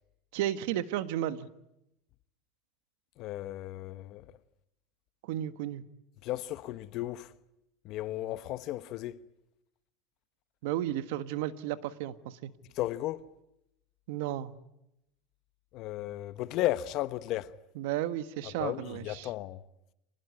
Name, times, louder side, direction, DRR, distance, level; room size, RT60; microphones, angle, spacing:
voice 1, 0.3-1.5 5.2-5.8 10.6-12.5 14.1-14.5 17.7-19.3, right 12 dB, 80° right, 1.4 m, -33 dB
voice 2, 3.2-4.3 6.2-7.3 7.8-9.2 12.7-13.2 15.7-17.5 18.6-19.6, left 15 dB, 55° left, 1.1 m, -34 dB
26.0 x 20.0 x 9.7 m
supercardioid pair, 135°, 0 cm